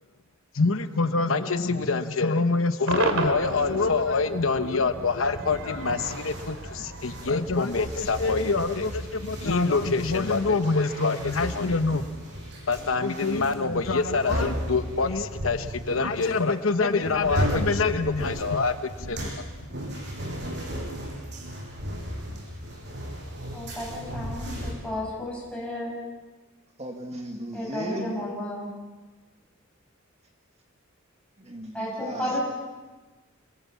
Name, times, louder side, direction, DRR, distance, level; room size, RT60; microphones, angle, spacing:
voice 1, 0.5-12.1 12.7-19.5, left 3 dB, 75° left, 9 dB, 1.0 m, -25 dB
Cheering / Crowd / Fireworks, 2.9-8.2, right 2 dB, 80° right, 2.9 m, -33 dB
sound 1, 5.5-5.6 5.9-24.7, equal, 55° right, 6.5 m, -35 dB
voice 2, 23.5-25.9 27.5-28.7 31.7-32.4, left 1 dB, 5° left, -4 dB, 6.2 m, -32 dB
voice 3, 26.8-28.1 31.4-32.4, right 1 dB, 30° right, 2 dB, 2.1 m, -36 dB
27.5 x 22.5 x 7.3 m, 1.3 s
head